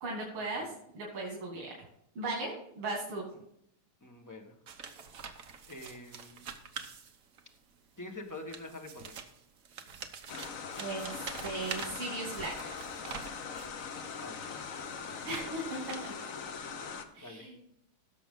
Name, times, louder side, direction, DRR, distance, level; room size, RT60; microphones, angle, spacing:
voice 1, 0.0-1.7 2.2-3.2 10.8-12.5 15.2-16.1 17.1-17.6, right 2 dB, 85° right, -2 dB, 3.1 m, -37 dB
voice 2, 4.0-4.5 5.7-6.5 8.0-9.2 14.2-14.6 15.1-15.3 17.2-17.5, left 2 dB, 10° left, 2 dB, 1.0 m, -46 dB
sound 1, 4.7-7.6 8.3-13.8 14.4-16.4, right 6 dB, 50° right, 1.1 m, -45 dB
sound 2, 10.3-17.0, left 5 dB, 55° left, 1.0 m, -41 dB
17.0 x 6.9 x 3.8 m, 0.75 s
omnidirectional pair, 2.4 m